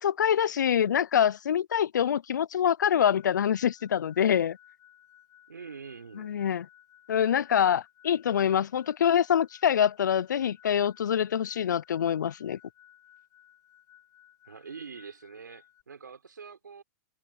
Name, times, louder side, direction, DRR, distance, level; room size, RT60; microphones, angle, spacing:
voice 1, 0.0-4.6 6.2-6.7 7.1-12.6, left 9 dB, 80° left, 0.5 m, -25 dB
sound 1, 3.1-15.8, left 12 dB, 30° left, 7.2 m, -58 dB
voice 2, 5.5-6.3 14.4-16.8, right 6 dB, 90° right, 5.1 m, -45 dB
hypercardioid pair, 120°, 10 cm